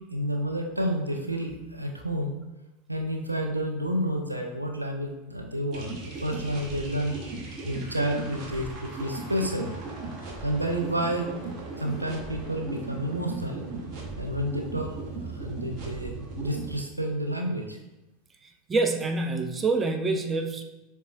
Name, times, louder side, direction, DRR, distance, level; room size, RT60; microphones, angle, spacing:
voice 1, 0.1-2.4 2.9-7.2 7.6-9.7 10.4-11.3 11.8-13.6 14.2-14.9 15.2-17.8, equal, 90° right, 2 dB, 0.4 m, -30 dB
sound 1, 5.7-16.8, right 3 dB, 40° right, 0.8 m, -37 dB
voice 2, 18.7-20.6, right 3 dB, 20° right, 5 dB, 0.4 m, -26 dB
6.7 x 2.3 x 2.4 m, 1.0 s
figure-of-eight pair, 85°, 0 cm